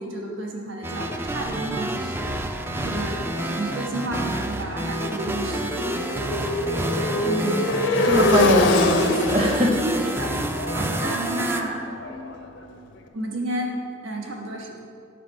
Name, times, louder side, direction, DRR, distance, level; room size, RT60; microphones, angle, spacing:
voice 1, 0.0-2.4 2.8-5.8 9.8-10.4 10.7-11.8 13.1-14.8, right 1 dB, 80° right, 0 dB, 1.2 m, -31 dB
sound 1, 0.8-11.6, right 1 dB, 10° right, 0.3 m, -29 dB
Motorcycle, 3.0-12.8, left 2 dB, 70° left, 0.7 m, -26 dB
voice 2, 7.2-7.6 8.0-9.8, right 1 dB, 30° right, 3 dB, 0.9 m, -22 dB
8.2 x 4.7 x 6.3 m, 2.3 s
head